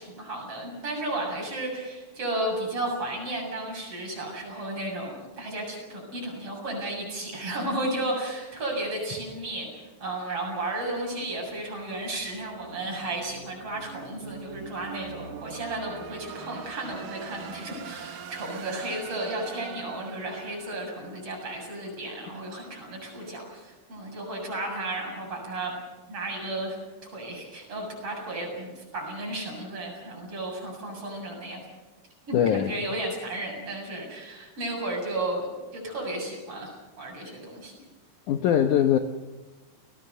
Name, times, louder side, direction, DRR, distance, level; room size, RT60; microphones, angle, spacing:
voice 1, 0.0-25.8 26.1-26.8 27.1-31.6 32.3-37.8, right 1 dB, 30° right, 0 dB, 8.1 m, -33 dB
sound 1, 10.9-22.0, right 7 dB, 60° right, 2.7 m, -44 dB
voice 2, 32.3-32.7 38.3-39.0, left 10 dB, 80° left, 7 dB, 1.8 m, -21 dB
30.0 x 19.0 x 6.8 m, 1.2 s
omnidirectional pair, 5.0 m